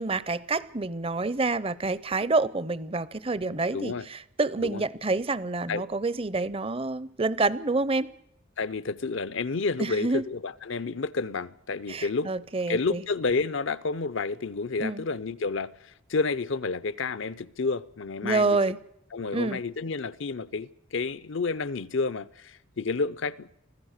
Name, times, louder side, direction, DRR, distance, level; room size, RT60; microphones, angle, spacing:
voice 1, 0.0-8.1 9.8-10.2 11.9-13.0 14.8-15.0 18.2-18.8 19.3-19.6, right 3 dB, 25° right, 0.7 m, -28 dB
voice 2, 3.7-4.1 4.6-4.8 5.7-5.8 8.6-12.3 12.7-18.6 19.1-23.6, left 4 dB, 65° left, 0.7 m, -30 dB
25.0 x 16.0 x 6.6 m
head